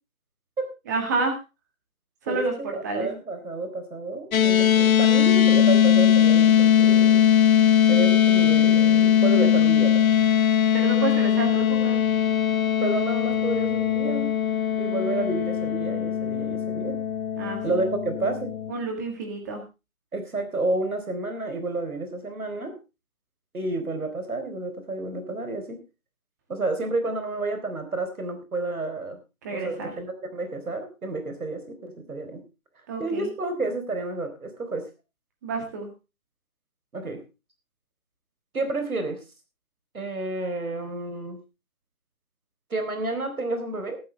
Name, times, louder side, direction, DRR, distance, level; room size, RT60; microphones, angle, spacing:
voice 1, 0.9-1.3 2.3-3.1 10.7-12.0 17.4-17.6 18.7-19.6 29.4-29.9 32.9-33.3 35.4-35.9, right 3 dB, 15° right, 3 dB, 1.9 m, -29 dB
voice 2, 2.3-7.2 7.9-10.1 12.8-14.3 14.8-17.0 17.6-18.5 20.1-22.8 23.5-25.8 26.5-29.2 29.5-32.4 33.0-34.9 36.9-37.2 38.5-39.2 39.9-41.4 42.7-44.0, right 2 dB, 90° right, 7 dB, 4.3 m, -30 dB
sound 1, 4.3-18.7, left 9 dB, 75° left, 0.8 m, -20 dB
14.0 x 13.5 x 3.4 m, 0.28 s
hypercardioid pair, 170°, 42 cm